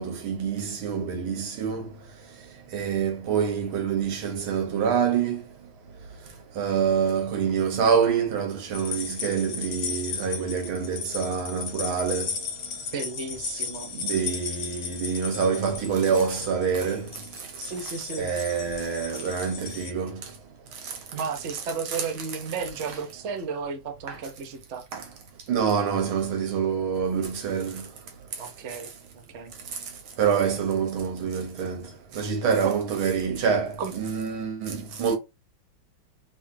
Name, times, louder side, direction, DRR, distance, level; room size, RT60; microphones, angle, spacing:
voice 1, 0.0-1.9 2.7-5.4 6.6-12.3 14.0-17.1 18.2-20.2 24.1-24.2 24.9-25.0 25.5-27.9 30.2-31.9 32.1-35.2, right 6 dB, 80° right, 2.0 m, -26 dB
sound 1, 8.7-19.9, left 6 dB, 50° left, 1.2 m, -35 dB
voice 2, 12.9-13.9 17.6-18.3 21.1-24.8 28.4-28.9 29.3-29.5 32.6-32.8 33.8-33.9, right 5 dB, 50° right, 0.9 m, -33 dB
5.0 x 3.3 x 2.7 m
omnidirectional pair, 2.2 m